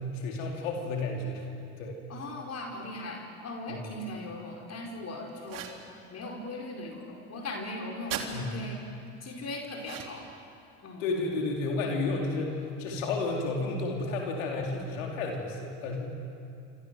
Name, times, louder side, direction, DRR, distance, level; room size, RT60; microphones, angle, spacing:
voice 1, 0.0-1.5 1.8-2.0 3.7-3.9 8.3-8.6 11.0-16.1, left 3 dB, 80° left, 0 dB, 4.7 m, -32 dB
voice 2, 2.1-5.7 6.1-8.8 9.2-10.2 10.8-11.0, left 2 dB, 40° left, 1 dB, 5.0 m, -39 dB
sound 1, 5.4-5.8 8.1-8.3 9.8-10.3, right 10 dB, 55° right, 3.5 m, -37 dB
27.0 x 27.0 x 7.8 m, 2.6 s
hypercardioid pair, 75°, 39 cm